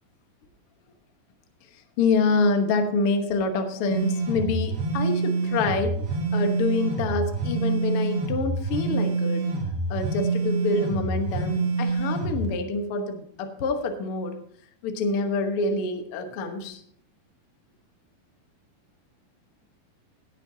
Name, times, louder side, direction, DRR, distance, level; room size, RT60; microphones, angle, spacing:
voice 1, 2.0-6.0 6.3-9.4 9.9-14.3 14.8-16.8, left 3 dB, 75° left, 5 dB, 1.2 m, -26 dB
sound 1, 3.9-12.5, right 3 dB, 75° right, 3.7 m, -26 dB
17.0 x 9.1 x 2.7 m, 0.65 s
omnidirectional pair, 4.4 m